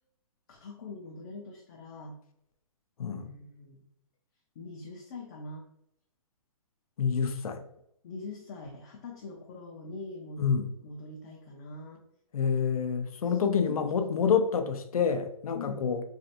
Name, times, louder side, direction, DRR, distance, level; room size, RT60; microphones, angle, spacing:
voice 1, 0.5-2.2 3.1-3.9 4.6-5.6 8.0-10.5 10.8-12.0 13.4-13.8 14.1-14.2 15.5-16.0, left 3 dB, 30° left, 0.4 m, -43 dB
voice 2, 7.0-7.6 10.4-10.7 12.3-16.0, left 6 dB, 85° left, 0.5 m, -27 dB
3.2 x 2.4 x 2.7 m
hypercardioid pair, 160°, 18 cm